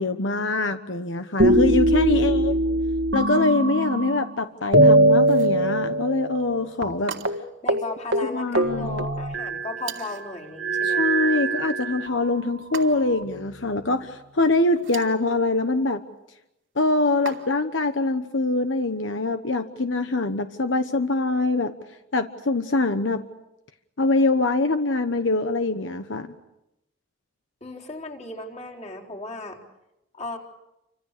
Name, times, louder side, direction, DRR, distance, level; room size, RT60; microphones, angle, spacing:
voice 1, 0.0-2.5 3.1-7.1 8.3-9.0 10.8-16.0 16.8-21.7 22.1-23.2 24.0-26.3, left 2 dB, 75° left, 8 dB, 1.1 m, -24 dB
sound 1, 1.4-4.3 4.7-6.6 6.8-6.9 7.2-7.4 7.7-7.9 8.1-9.8 10.6-12.2 12.9-13.8, right 1 dB, 65° right, 1.7 m, -21 dB
voice 2, 2.1-2.8 7.6-11.1 11.3-11.4 27.6-29.6 30.1-30.4, left 2 dB, 35° left, -1 dB, 4.1 m, -36 dB
sound 2, 5.2-5.6 7.1-7.6 9.8-10.3 12.7-13.3 14.7-15.2 17.3-17.8, right 6 dB, 85° right, 2.8 m, -38 dB
29.0 x 26.0 x 6.7 m, 0.90 s
head